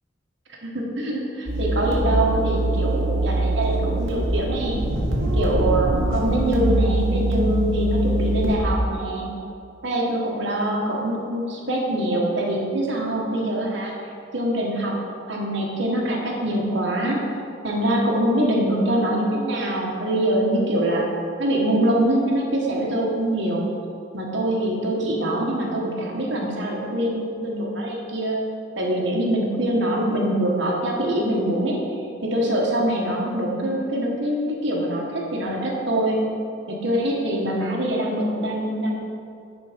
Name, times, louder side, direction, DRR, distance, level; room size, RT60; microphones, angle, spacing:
voice 1, 0.6-4.8 5.3-9.3 9.8-13.9 14.3-15.0 15.3-17.2 17.6-21.1 21.4-23.7 24.1-28.4 28.8-31.8 32.2-36.2 36.7-38.9, right 1 dB, 60° right, -2 dB, 1.4 m, -24 dB
sound 1, 1.5-8.6, right 1 dB, 90° right, 1.6 m, -23 dB
10.5 x 4.4 x 5.1 m, 2.4 s
head